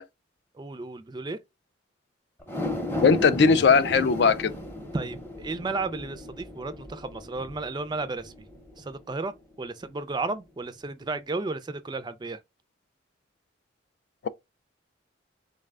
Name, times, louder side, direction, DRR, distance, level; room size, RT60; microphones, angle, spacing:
voice 1, 0.5-1.4 4.9-8.3 8.8-12.4, right 3 dB, 20° right, 0.3 m, -33 dB
sound 1, 2.4-8.9 9.3-9.4, left 1 dB, 10° left, 0.7 m, -35 dB
voice 2, 3.0-4.5, left 5 dB, 55° left, 0.3 m, -19 dB
3.9 x 2.2 x 3.5 m
head